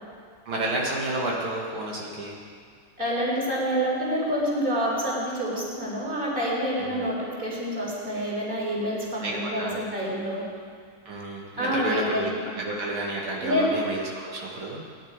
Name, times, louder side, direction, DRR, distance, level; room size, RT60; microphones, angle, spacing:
voice 1, 0.5-2.4 6.8-7.1 9.2-9.8 11.1-12.3 12.6-14.8, right 1 dB, 85° right, -3 dB, 2.6 m, -31 dB
voice 2, 3.0-10.4 11.6-12.4 13.4-13.7, equal, 25° right, -5 dB, 4.1 m, -27 dB
18.5 x 10.5 x 5.1 m, 2.1 s
omnidirectional pair, 2.2 m